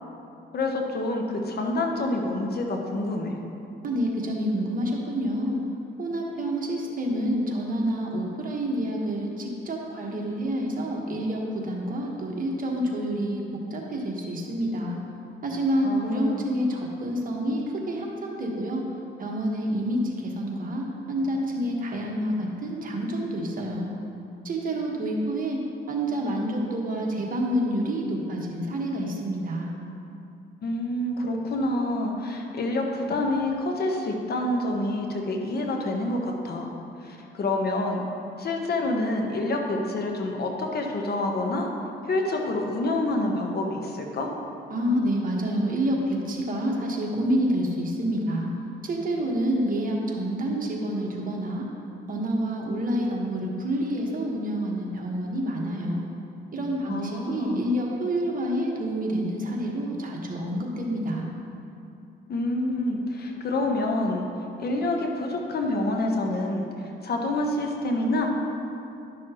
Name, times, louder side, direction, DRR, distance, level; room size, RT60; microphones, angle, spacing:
voice 1, 0.5-3.3 15.8-16.4 30.6-36.7 37.0-38.0 38.4-41.7 42.0-44.3 56.9-57.6 62.3-64.3 64.6-66.6 67.0-68.3, left 2 dB, 55° left, 2 dB, 1.0 m, -27 dB
voice 2, 3.8-5.6 6.0-13.4 13.7-15.0 15.4-18.8 19.2-23.9 24.4-25.6 25.9-29.7 44.7-48.5 48.8-51.7 52.1-56.1 56.5-61.3, equal, 45° right, -1 dB, 1.4 m, -28 dB
11.5 x 6.2 x 3.0 m, 2.7 s
cardioid pair, 90°, 20 cm